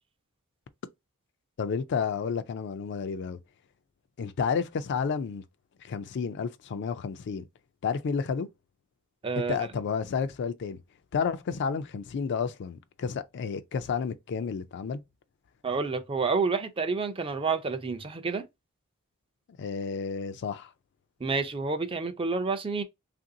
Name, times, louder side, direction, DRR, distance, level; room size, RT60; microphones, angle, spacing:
voice 1, 1.6-3.4 4.2-5.4 5.8-7.5 7.8-8.5 9.4-10.8 11.1-15.0 19.6-20.7, left 6 dB, 55° left, 0.3 m, -31 dB
voice 2, 9.2-9.6 15.6-18.5 21.2-22.8, right 4 dB, 25° right, 0.4 m, -29 dB
3.2 x 2.5 x 2.6 m
head